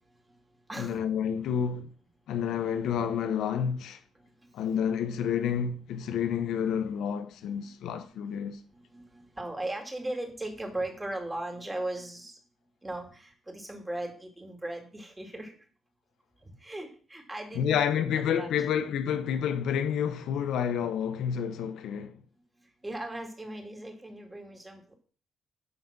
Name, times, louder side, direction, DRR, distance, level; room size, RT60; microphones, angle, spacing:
voice 1, 0.8-1.9 2.3-4.0 4.5-8.6 17.5-22.1, left 8 dB, 80° left, 1.0 m, -29 dB
voice 2, 8.9-12.3 12.8-15.5 16.6-18.5 22.8-25.0, right 1 dB, 15° right, 2.3 m, -38 dB
11.0 x 3.8 x 6.0 m
cardioid pair, 90°, 0 cm